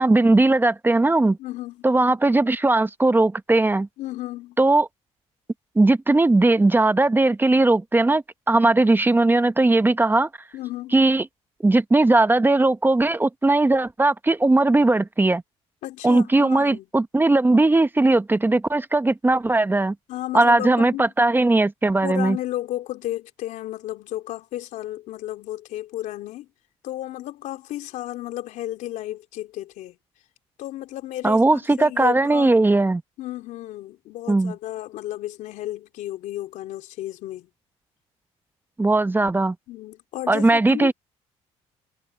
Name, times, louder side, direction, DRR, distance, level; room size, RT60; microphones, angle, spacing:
voice 1, 0.0-1.4 1.8-3.9 4.6-4.9 5.8-10.3 10.9-11.2 11.6-15.4 16.0-19.9 20.3-22.4 31.2-33.0 34.3-34.5 38.8-39.5 40.3-40.9, right 2 dB, 15° right, 1.0 m, -18 dB
voice 2, 1.4-1.9 4.0-4.6 10.5-11.0 15.8-16.8 20.1-21.0 22.0-26.5 26.8-30.0 30.6-32.5 33.2-37.5 39.7-40.9, left 14 dB, 75° left, 3.5 m, -33 dB
supercardioid pair, 80°, 13 cm